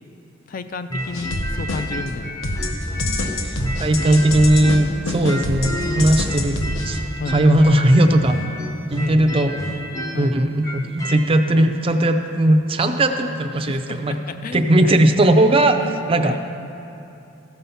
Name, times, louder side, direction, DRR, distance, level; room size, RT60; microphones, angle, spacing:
voice 1, 0.5-2.4 7.2-7.4 9.0-9.4 10.1-10.3 13.6-15.0 15.8-16.4, left 3 dB, 40° left, 11 dB, 0.3 m, -32 dB
sound 1, 0.9-4.9 5.2-11.2, left 1 dB, 15° left, 0.7 m, -31 dB
sound 2, 1.1-2.1 2.4-7.0, left 1 dB, 75° left, 0.9 m, -25 dB
voice 2, 3.4-6.6 6.9-7.0 7.3-8.4 8.9-9.5 10.2-14.2 14.5-16.3, right 1 dB, 25° right, 6 dB, 0.5 m, -17 dB
14.0 x 5.7 x 5.5 m, 2.8 s
head